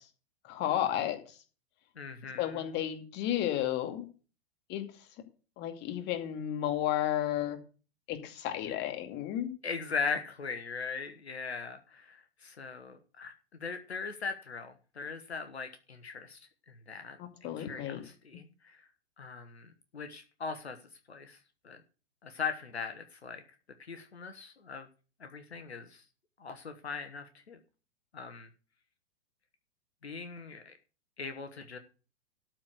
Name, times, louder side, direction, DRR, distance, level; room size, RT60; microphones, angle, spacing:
voice 1, 0.4-1.2 2.4-4.0 4.7-4.9 5.6-7.6 8.1-9.5 17.2-18.0, left 11 dB, 35° left, 6 dB, 2.3 m, -32 dB
voice 2, 2.0-2.8 8.6-8.7 9.6-13.3 13.6-16.4 16.7-18.8 19.2-20.8 21.1-21.4 21.6-21.8 22.2-23.4 23.8-24.9 25.2-26.0 26.4-27.6 28.1-28.5 30.0-30.7 31.2-31.8, left 5 dB, 80° left, 8 dB, 1.3 m, -40 dB
13.0 x 4.6 x 8.2 m, 0.36 s
figure-of-eight pair, 105°, 32 cm